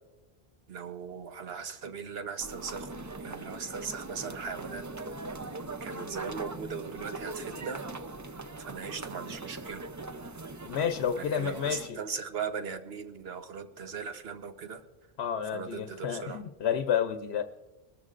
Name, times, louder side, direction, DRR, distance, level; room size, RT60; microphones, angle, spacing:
voice 1, 0.7-2.9 3.2-4.9 5.8-7.8 8.6-9.8 11.2-14.8 15.5-16.4, right 6 dB, 70° right, 8 dB, 1.1 m, -38 dB
sound 1, 2.4-11.9, right 3 dB, 30° right, 0.4 m, -41 dB
voice 2, 10.7-12.0 15.2-17.4, left 8 dB, 85° left, 8 dB, 0.9 m, -30 dB
22.0 x 14.0 x 2.5 m, 1.2 s
omnidirectional pair, 1.1 m